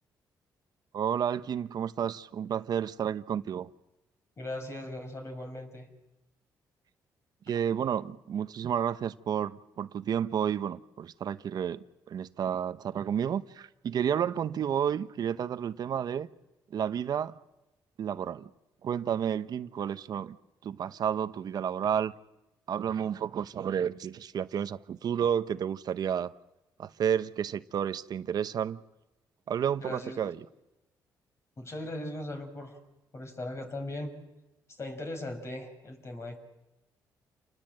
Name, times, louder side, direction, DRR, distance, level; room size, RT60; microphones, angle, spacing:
voice 1, 0.9-3.7 7.5-16.3 16.7-17.4 18.0-18.5 18.8-20.4 20.6-22.1 22.7-26.3 26.8-28.8 29.5-30.4, right 8 dB, 60° right, 0.9 m, -31 dB
voice 2, 4.4-5.9 29.8-30.3 31.6-32.8 33.1-34.1 34.7-36.4, left 1 dB, 40° left, 6.0 m, -39 dB
29.0 x 20.0 x 7.7 m
cardioid pair, 85°, 8 cm